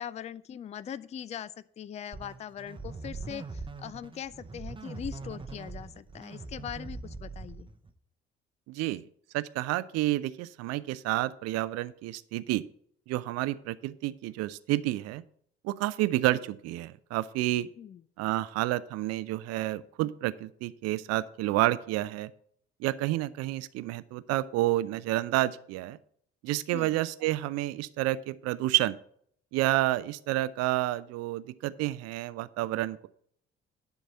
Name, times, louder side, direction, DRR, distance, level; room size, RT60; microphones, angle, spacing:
voice 1, 0.0-7.7 17.6-18.0 26.7-27.0, left 9 dB, 20° left, 18 dB, 0.4 m, -41 dB
sound 1, 2.1-7.9, right 3 dB, 15° right, 0.8 m, -42 dB
voice 2, 8.7-9.0 9.3-12.6 13.1-15.2 15.6-17.7 18.2-22.3 22.8-26.0 26.4-29.0 29.5-33.1, right 16 dB, 55° right, 16 dB, 0.5 m, -29 dB
10.5 x 4.1 x 7.1 m, 0.64 s
figure-of-eight pair, 50°, 31 cm